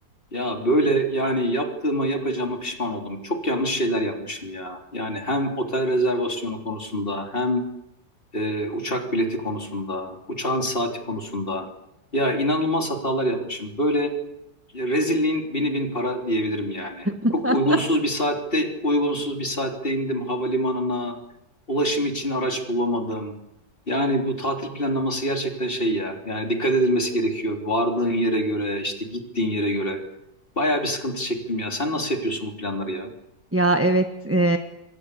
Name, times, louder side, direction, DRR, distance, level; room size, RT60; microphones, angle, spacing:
voice 1, 0.3-7.6 8.3-11.7 12.1-14.1 14.7-17.1 17.3-21.1 21.7-23.4 23.9-30.0 30.6-33.1, equal, 30° left, 3 dB, 3.6 m, -25 dB
voice 2, 17.0-17.8 33.5-34.6, right 1 dB, 10° right, 6 dB, 1.2 m, -21 dB
28.0 x 23.5 x 8.4 m, 0.87 s
omnidirectional pair, 2.0 m